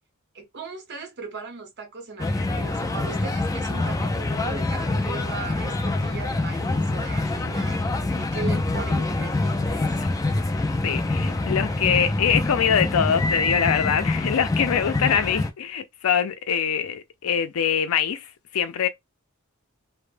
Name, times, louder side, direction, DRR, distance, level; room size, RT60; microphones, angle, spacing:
voice 1, 0.3-7.9 8.1-9.9, right 4 dB, 55° right, 0.8 m, -38 dB
sound 1, 2.2-15.5, left 2 dB, 15° left, 0.3 m, -25 dB
voice 2, 10.8-18.9, left 8 dB, 80° left, 0.4 m, -24 dB
2.1 x 2.0 x 3.2 m
head